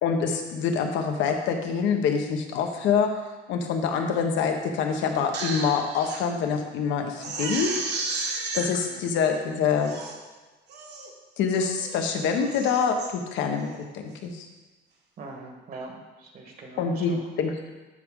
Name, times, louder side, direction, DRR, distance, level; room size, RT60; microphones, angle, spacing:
voice 1, 0.0-3.1 3.5-7.7 8.5-10.0 11.4-14.4 16.8-17.7, left 6 dB, 80° left, 4 dB, 1.1 m, -26 dB
Crying sobbing, 5.1-6.2 6.6-6.7 7.2-8.7 9.3-9.4 9.8-10.2 10.7-11.1 11.5-12.0 12.3-13.1 13.6-13.8, right 3 dB, 65° right, 1.5 m, -33 dB
voice 2, 8.6-9.0 15.2-17.2, right 3 dB, 50° right, 2 dB, 1.4 m, -42 dB
12.5 x 4.7 x 3.7 m, 1.2 s
cardioid pair, 150°, 19 cm